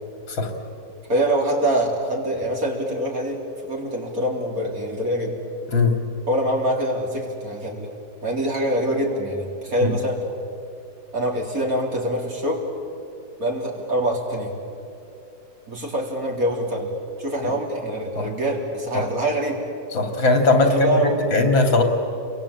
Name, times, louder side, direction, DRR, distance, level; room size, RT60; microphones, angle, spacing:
voice 1, 1.1-5.4 6.3-7.9 8.2-10.2 11.1-12.6 13.4-14.5 15.7-16.9 17.2-19.6 20.7-21.2, right 1 dB, 45° right, -1 dB, 4.4 m, -24 dB
voice 2, 19.9-20.9 21.3-21.8, left 3 dB, 85° left, 5 dB, 3.6 m, -19 dB
30.0 x 22.5 x 8.8 m, 2.8 s
omnidirectional pair, 2.1 m